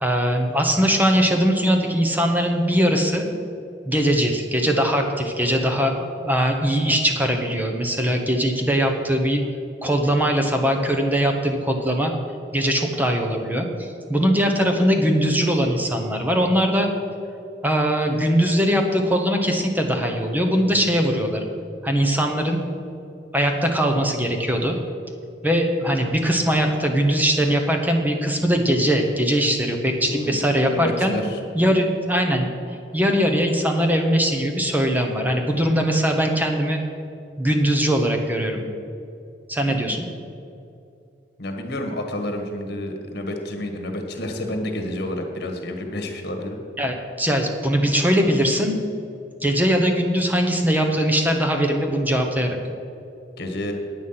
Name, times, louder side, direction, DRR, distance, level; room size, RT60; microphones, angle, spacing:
voice 1, 0.0-3.3 3.9-9.4 9.8-12.1 12.5-16.9 17.6-21.4 21.8-22.6 23.3-24.8 25.4-31.2 31.5-32.5 32.9-36.8 37.4-38.6 39.5-40.1 46.8-48.8 49.4-52.6, equal, 10° right, 3 dB, 0.9 m, -21 dB
voice 2, 30.7-31.4 39.7-40.0 41.4-46.6 53.4-53.7, left 1 dB, 55° left, 4 dB, 1.5 m, -29 dB
9.5 x 8.3 x 5.7 m, 2.5 s
head